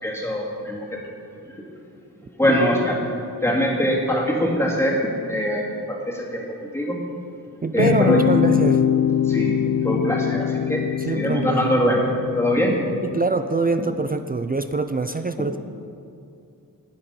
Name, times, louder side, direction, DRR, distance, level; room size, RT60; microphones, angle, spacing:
voice 1, 0.0-1.0 1.5-1.6 2.4-3.0 3.4-7.0 7.7-8.2 9.2-9.5 9.8-12.1 12.4-12.8, equal, 5° left, -3 dB, 2.4 m, -23 dB
voice 2, 7.6-8.8 11.1-11.8 13.0-15.6, right 3 dB, 25° right, 9 dB, 0.4 m, -24 dB
sound 1, 7.8-13.3, left 9 dB, 60° left, 0.5 m, -23 dB
17.5 x 7.0 x 5.3 m, 2.6 s
wide cardioid pair, 105°, 36 cm